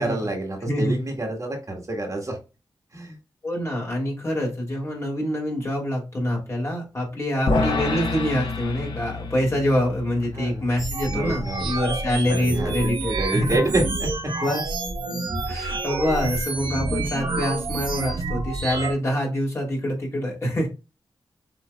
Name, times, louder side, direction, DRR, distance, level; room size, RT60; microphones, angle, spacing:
voice 1, 0.0-2.4 2.9-3.2 10.3-10.6 11.1-11.7 12.3-14.3, right 1 dB, 40° right, 2 dB, 1.7 m, -28 dB
voice 2, 0.6-1.0 3.4-13.6 14.4-14.6 15.5-20.7, equal, 35° left, -2 dB, 2.8 m, -25 dB
sound 1, 7.5-13.8, left 3 dB, 75° left, 1.1 m, -30 dB
sound 2, 10.8-18.9, right 3 dB, 75° right, 1.4 m, -28 dB
6.8 x 3.4 x 2.2 m, 0.30 s
cardioid pair, 70°, 8 cm